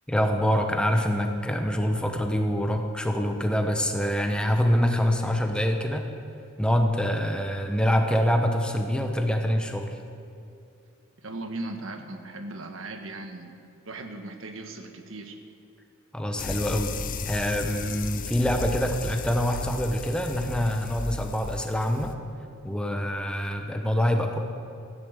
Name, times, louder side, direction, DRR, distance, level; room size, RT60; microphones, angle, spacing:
voice 1, 0.1-6.0 6.6-10.0 16.1-16.9 17.3-22.1 22.6-24.4, equal, 5° left, 4 dB, 1.1 m, -25 dB
voice 2, 11.2-13.6 13.8-15.4, right 2 dB, 70° right, 5 dB, 1.4 m, -38 dB
sound 1, 16.4-22.1, left 3 dB, 40° left, 0.6 m, -35 dB
14.0 x 10.5 x 8.3 m, 2.6 s
head